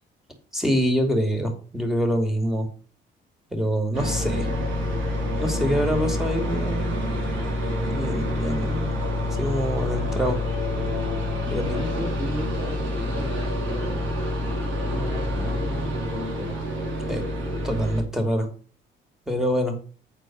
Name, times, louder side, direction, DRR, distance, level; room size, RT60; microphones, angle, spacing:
voice 1, 0.5-2.7 3.5-4.5 5.4-7.0 7.9-9.0 9.4-10.4 11.5-11.8 17.1-17.2 17.6-18.5 19.3-19.8, equal, ahead, 4 dB, 2.6 m, -25 dB
sound 1, 3.9-18.0, left 1 dB, 75° right, 3.2 m, -27 dB
voice 2, 11.4-14.1 14.8-16.7, equal, 25° right, -2 dB, 3.2 m, -35 dB
8.7 x 4.6 x 6.2 m, 0.41 s
cardioid pair, 90°, 20 cm